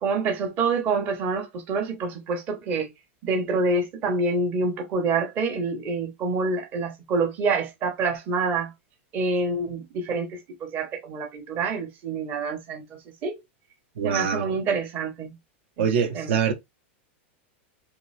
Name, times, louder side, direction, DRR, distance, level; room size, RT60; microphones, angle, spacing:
voice 1, 0.0-2.9 3.2-8.7 9.1-13.3 14.0-15.4 15.8-15.9 16.1-16.4, right 3 dB, 25° right, 0.9 m, -27 dB
voice 2, 14.0-14.5 15.8-16.5, right 7 dB, 65° right, 1.0 m, -24 dB
3.8 x 3.2 x 3.2 m
supercardioid pair, 170°, 7 cm